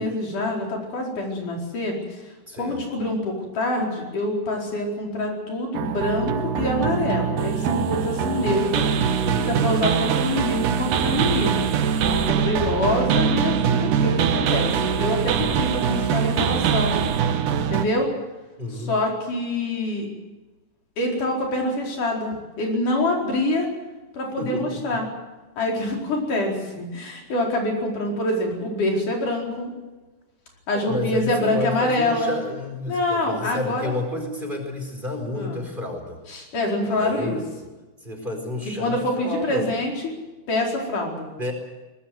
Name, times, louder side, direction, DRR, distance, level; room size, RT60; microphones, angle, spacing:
voice 1, 0.0-8.9 9.4-11.6 12.1-14.7 15.0-17.0 17.7-18.1 18.7-20.1 21.0-23.7 24.1-25.0 25.6-29.7 30.7-32.4 32.9-33.9 35.3-35.6 36.3-37.4 38.8-39.9 40.5-41.3, left 1 dB, 75° left, 0 dB, 6.2 m, -25 dB
voice 2, 2.5-2.8 9.2-9.7 18.6-18.9 24.4-25.0 30.7-36.2 36.8-37.7 38.0-39.7 41.4-41.5, left 1 dB, 15° right, 4 dB, 4.5 m, -30 dB
sound 1, 5.7-17.9, right 7 dB, 85° right, 2.8 m, -23 dB
23.0 x 20.0 x 7.9 m, 1.1 s
omnidirectional pair, 3.6 m